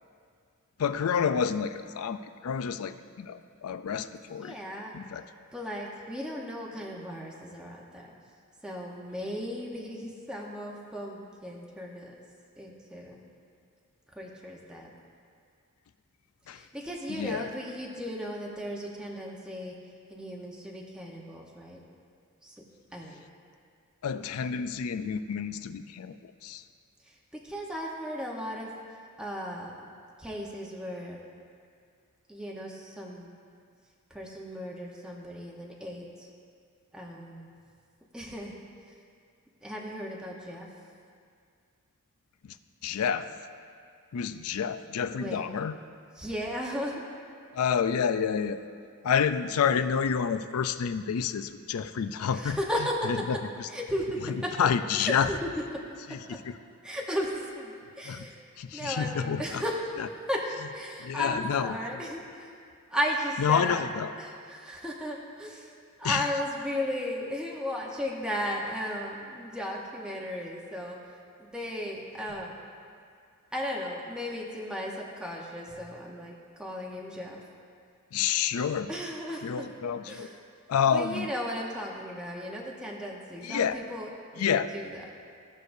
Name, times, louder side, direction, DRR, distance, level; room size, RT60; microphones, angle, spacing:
voice 1, 0.8-4.5 4.9-5.2 16.5-16.6 17.1-17.5 24.0-26.6 42.8-43.3 44.1-45.7 47.5-48.6 49.0-52.6 53.0-53.7 54.6-55.3 56.1-56.5 58.0-58.3 58.6-59.6 60.0-60.1 61.0-62.0 63.4-64.1 66.0-66.3 78.1-78.9 79.4-80.3 80.7-81.3 83.4-83.8 84.4-84.7, left 7 dB, 70° left, 11 dB, 0.4 m, -29 dB
voice 2, 4.4-4.9 5.5-8.1 8.6-12.1 12.6-13.2 14.1-14.9 16.5-19.8 20.1-21.8 22.4-22.6 22.9-23.2 27.0-27.2 27.4-28.7 29.2-29.8 30.2-31.2 32.3-33.3 34.1-36.3 36.9-37.5 38.1-38.5 38.9-39.0 39.6-40.7 45.1-45.4 46.2-47.0 52.3-53.3 53.7-54.7 55.0-55.5 56.8-58.4 58.7-59.8 60.3-62.5 62.9-63.9 64.2-65.7 66.0-71.0 71.4-72.5 73.5-77.4 78.9-79.7 80.1-80.4 80.9-84.1 84.4-84.5 84.7-85.0, equal, 5° right, -3 dB, 0.8 m, -35 dB
16.0 x 6.5 x 2.6 m, 2.3 s
head